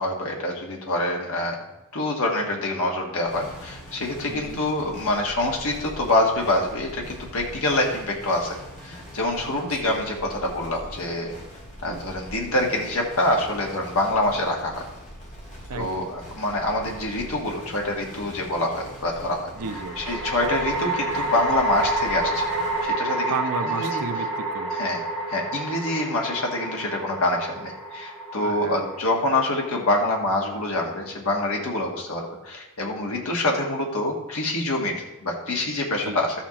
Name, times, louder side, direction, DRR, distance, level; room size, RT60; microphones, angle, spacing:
voice 1, 0.0-1.6 1.9-8.5 8.8-11.3 11.8-14.8 15.7-19.5 20.0-22.5 22.8-23.3 23.7-24.0 24.7-25.0 25.3-34.9 35.2-36.3, left 1 dB, 65° left, 0 dB, 1.3 m, -26 dB
sound 1, 3.3-22.9, equal, 35° left, 2.2 m, -42 dB
voice 2, 4.3-4.6 9.4-10.0 11.9-12.0 15.7-16.1 19.6-20.2 23.3-24.8 28.4-28.9 36.0-36.2, right 5 dB, 80° right, 9 dB, 0.6 m, -33 dB
sound 2, 16.5-17.2 19.6-30.9, right 2 dB, 5° left, 1.5 m, -29 dB
13.0 x 7.2 x 2.9 m, 0.96 s
head